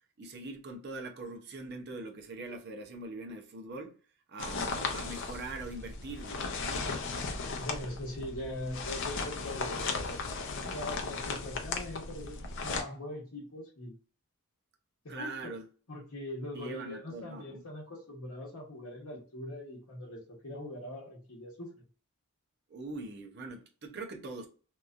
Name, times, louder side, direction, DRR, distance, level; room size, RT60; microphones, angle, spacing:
voice 1, 0.2-3.9 4.3-6.9 15.1-15.7 16.5-17.6 22.7-24.5, right 2 dB, 50° right, 0.5 m, -42 dB
sound 1, 4.4-12.8, left 4 dB, 55° left, 0.5 m, -36 dB
voice 2, 7.6-10.4 10.6-13.9 15.0-15.5 15.9-21.7, left 1 dB, 85° left, 0.9 m, -42 dB
2.9 x 2.4 x 2.3 m
head